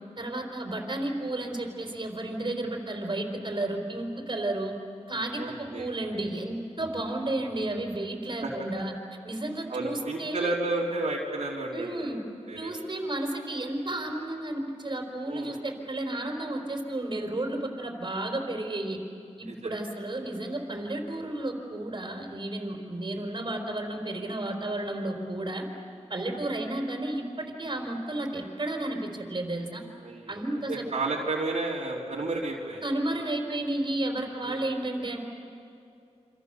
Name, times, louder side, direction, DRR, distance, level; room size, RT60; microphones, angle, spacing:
voice 1, 0.2-4.7 5.1-8.9 9.2-10.5 11.7-12.2 12.6-19.0 19.4-25.7 26.1-29.8 30.3-30.8 32.8-35.2, right 1 dB, 45° right, 2 dB, 4.2 m, -32 dB
voice 2, 5.4-5.9 8.4-8.5 9.7-12.1 12.5-12.7 15.3-15.6 19.5-19.7 30.0-32.8 34.4-34.6, right 2 dB, 75° right, -4 dB, 3.2 m, -32 dB
28.5 x 26.0 x 6.9 m, 2.6 s
wide cardioid pair, 75°, 12 cm